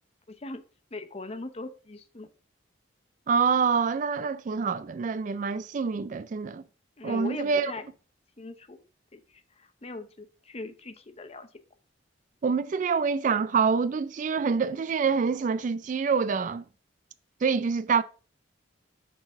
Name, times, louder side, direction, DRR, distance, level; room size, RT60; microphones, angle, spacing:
voice 1, 0.3-0.6 0.9-2.3 7.0-7.9 8.4-8.8 9.1-11.5, left 2 dB, 30° left, 0.7 m, -40 dB
voice 2, 3.3-6.6 7.0-7.7 12.4-16.7 17.4-18.0, right 5 dB, 40° right, 0.3 m, -26 dB
6.5 x 4.0 x 5.9 m
head